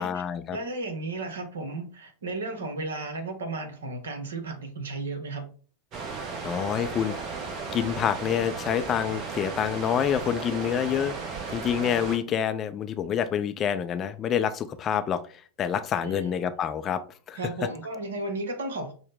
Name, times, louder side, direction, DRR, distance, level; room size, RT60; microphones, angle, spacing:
voice 1, 0.0-0.6 6.4-7.4 7.7-11.1 11.5-17.0 17.3-17.4, left 8 dB, 30° left, 10 dB, 0.3 m, -27 dB
voice 2, 0.5-5.5 12.3-12.4 16.0-16.3 17.3-18.9, right 2 dB, 65° right, 6 dB, 0.9 m, -34 dB
sound 1, 5.9-12.2, right 4 dB, 35° right, 0.8 m, -35 dB
6.3 x 2.1 x 3.6 m, 0.40 s
figure-of-eight pair, 90°, 0 cm